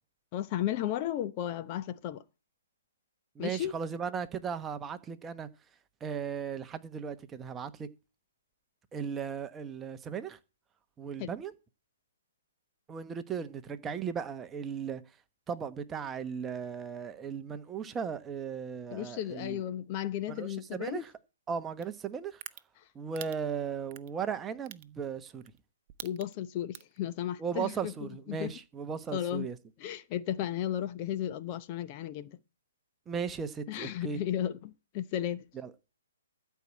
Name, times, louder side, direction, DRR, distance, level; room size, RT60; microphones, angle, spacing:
voice 1, 0.3-2.2 3.4-3.7 11.2-11.3 18.9-21.0 26.0-28.5 29.1-29.5 29.8-32.4 33.7-35.4, left 11 dB, 35° left, 0.8 m, -34 dB
voice 2, 3.3-5.5 6.0-7.9 8.9-10.4 11.0-11.5 12.9-15.0 15.5-19.6 20.3-21.1 21.5-22.4 22.9-25.4 27.4-29.6 33.1-34.2 35.5-35.7, right 6 dB, 15° right, 1.1 m, -36 dB
sound 1, 21.8-21.9 22.4-22.6 23.2-23.3 23.9-24.1 24.7-24.8 25.4-25.6 25.9-26.3 26.7-27.0, right 14 dB, 35° right, 0.8 m, -42 dB
13.5 x 4.7 x 8.4 m
hypercardioid pair, 135°, 0 cm